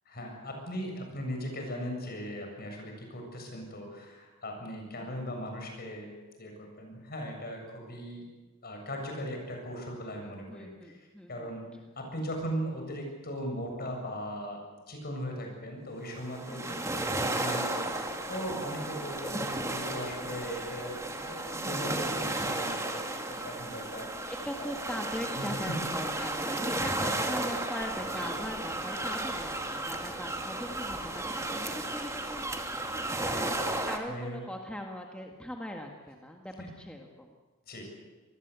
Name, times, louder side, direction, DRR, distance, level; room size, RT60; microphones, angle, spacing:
voice 1, 0.1-6.1 6.4-8.3 8.6-11.0 11.3-11.7 12.0-14.6 14.9-24.3 24.6-24.8 25.4-25.8 27.2-27.4 33.2-34.4 36.6-36.7 37.7-37.8, equal, 50° left, 2 dB, 7.4 m, -39 dB
voice 2, 5.0-5.4 10.5-11.5 16.5-16.9 24.1-32.6 33.9-37.3, equal, 5° left, 2 dB, 1.7 m, -40 dB
sound 1, 16.1-34.0, right 2 dB, 15° right, 2.2 m, -34 dB
26.0 x 20.0 x 8.2 m, 1.2 s
head